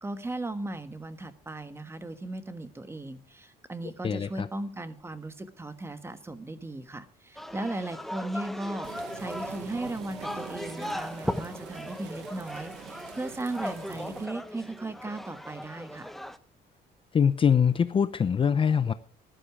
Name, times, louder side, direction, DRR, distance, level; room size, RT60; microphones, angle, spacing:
voice 1, 0.0-16.1, right 2 dB, 15° right, 1.4 m, -37 dB
voice 2, 4.0-4.5 17.1-18.9, left 7 dB, 30° left, 0.6 m, -23 dB
sound 1, 7.4-16.4, equal, ahead, 0.9 m, -38 dB
sound 2, 8.8-14.3, right 12 dB, 85° right, 1.0 m, -45 dB
15.0 x 11.5 x 4.8 m
cardioid pair, 110°, 17 cm